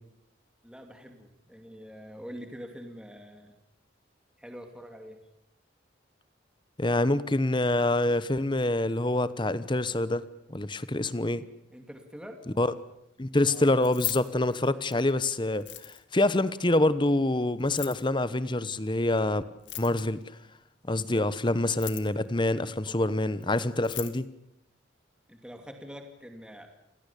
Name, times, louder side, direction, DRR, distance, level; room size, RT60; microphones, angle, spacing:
voice 1, 0.6-3.5 4.4-5.2 11.7-12.4 13.4-13.7 21.1-21.3 22.8-23.4 25.3-26.7, equal, 5° right, 5 dB, 2.5 m, -45 dB
voice 2, 6.8-10.2 10.5-11.4 12.6-12.7 13.2-19.4 19.8-20.2 20.9-24.3, left 2 dB, 25° left, 16 dB, 1.0 m, -26 dB
Keys jangling, 13.7-15.1 15.5-16.2 17.6-18.1 19.5-20.2 21.6-22.3 23.4-23.5 23.7-24.2, left 16 dB, 70° left, 2.1 m, -38 dB
29.5 x 16.5 x 8.4 m, 0.80 s
head